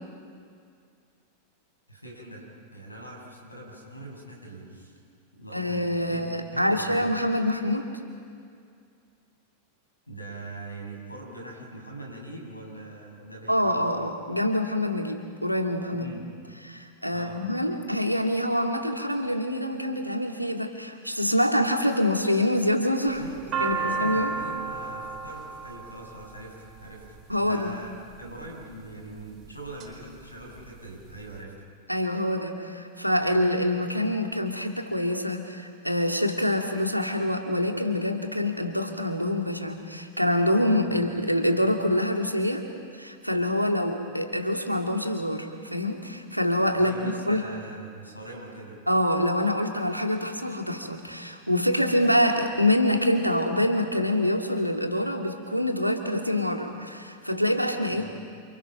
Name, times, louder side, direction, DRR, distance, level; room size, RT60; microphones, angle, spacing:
voice 1, 1.9-5.0 5.4-6.2 6.5-7.0 10.1-13.9 15.9-16.2 17.1-17.4 23.2-31.5 40.8-41.0 46.7-48.8 57.9-58.1, right 1 dB, 85° left, -1 dB, 7.9 m, -42 dB
voice 2, 5.5-7.9 13.5-16.2 16.6-23.2 23.6-24.3 27.3-27.8 31.9-42.6 42.9-47.4 48.9-58.0, left 1 dB, 90° right, 3 dB, 2.5 m, -26 dB
sound 1, 23.1-27.3 28.1-28.6 29.2-29.9 30.2-30.3 30.5-31.3, right 5 dB, 30° right, 4.5 m, -32 dB
29.0 x 28.5 x 5.9 m, 2.3 s
figure-of-eight pair, 90°, 0 cm